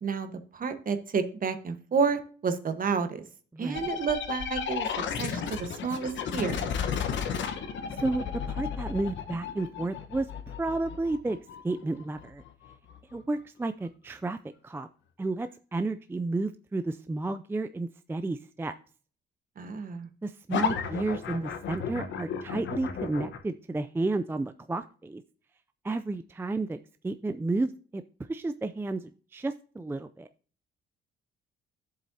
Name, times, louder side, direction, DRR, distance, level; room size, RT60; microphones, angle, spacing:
voice 1, 0.0-3.2 3.6-4.9 5.2-6.7 19.6-20.1, right 5 dB, 45° right, 8 dB, 1.2 m, -30 dB
voice 2, 3.5-3.9 8.0-10.3 10.6-11.4 11.6-12.4 13.1-14.4 14.6-14.9 15.2-18.7 20.2-25.2 25.8-26.8 27.0-28.0 28.3-29.0 29.3-30.3, right 2 dB, 10° right, 10 dB, 0.4 m, -32 dB
sound 1, 3.7-13.2 20.5-23.4, left 7 dB, 70° left, 1.1 m, -33 dB
10.0 x 7.6 x 2.7 m, 0.40 s
cardioid pair, 90°, 20 cm